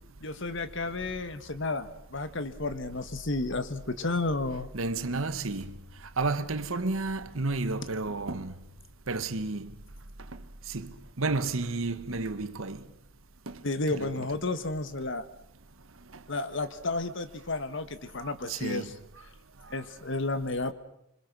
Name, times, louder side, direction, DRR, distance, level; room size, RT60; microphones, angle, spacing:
voice 1, 0.2-4.7 13.6-15.2 16.3-18.9 19.7-20.7, left 2 dB, 60° left, 1.5 m, -32 dB
voice 2, 4.7-5.7 6.2-8.5 9.1-9.7 10.7-12.8 13.5-13.6 13.9-14.3 18.2-18.9, right 3 dB, 75° right, 1.3 m, -31 dB
26.0 x 25.0 x 6.1 m
head